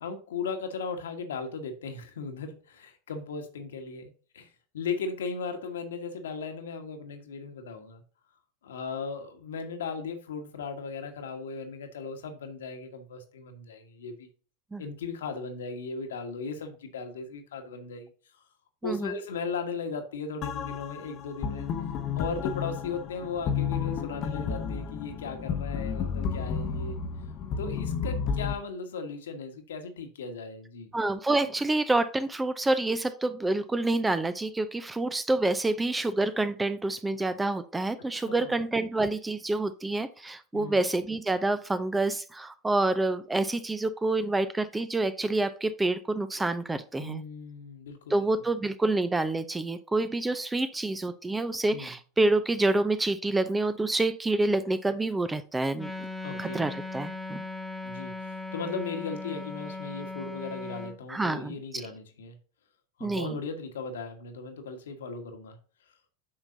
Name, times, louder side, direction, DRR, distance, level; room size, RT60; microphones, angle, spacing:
voice 1, 0.0-8.0 8.6-14.3 14.8-18.1 18.8-21.7 22.2-27.0 27.6-30.9 38.1-38.5 40.5-40.8 47.0-48.5 51.7-51.9 56.2-56.7 57.8-62.4 63.0-65.6, left 4 dB, 70° left, 6 dB, 1.4 m, -37 dB
voice 2, 18.8-19.1 30.9-47.2 48.1-55.9 56.4-57.4 61.1-61.6 63.0-63.4, right 2 dB, 10° right, 13 dB, 0.6 m, -27 dB
sound 1, 20.4-28.5, left 6 dB, 40° left, 0.9 m, -32 dB
Wind instrument woodwind instrument, 55.8-61.0, left 3 dB, 5° left, 1.1 m, -38 dB
8.8 x 5.9 x 2.7 m, 0.40 s
figure-of-eight pair, 85°, 0 cm